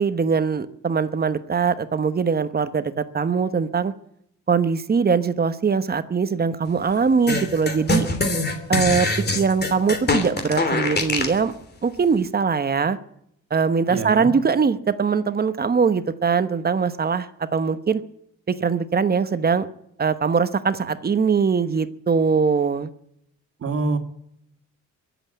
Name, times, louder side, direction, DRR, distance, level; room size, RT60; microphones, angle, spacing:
voice 1, 0.0-3.9 4.5-8.1 8.7-9.1 9.3-11.5 11.8-13.0 13.5-18.0 18.5-19.7 20.0-22.9, right 5 dB, 30° right, 12 dB, 1.1 m, -21 dB
sound 1, 7.3-11.4, left 2 dB, 35° left, 3.1 m, -23 dB
voice 2, 13.9-14.3 23.6-24.0, right 3 dB, 50° right, 6 dB, 2.3 m, -25 dB
22.5 x 8.2 x 7.9 m, 0.76 s
cardioid pair, 90°, 30 cm